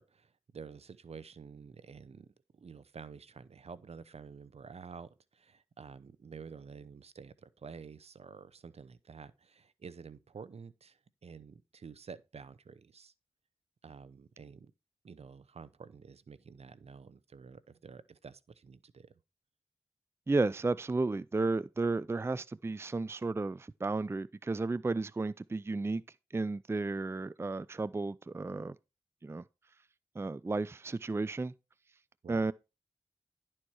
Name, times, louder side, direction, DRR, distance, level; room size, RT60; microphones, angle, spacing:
voice 1, 0.0-2.3 2.5-13.1 13.8-14.7 15.0-19.1 32.2-32.4, right 5 dB, 65° right, 0.7 m, -50 dB
voice 2, 20.3-26.0 26.3-28.8 29.2-29.4 30.2-31.5 32.3-32.5, right 3 dB, 20° right, 0.4 m, -33 dB
11.0 x 4.4 x 4.7 m
cardioid pair, 45°, 11 cm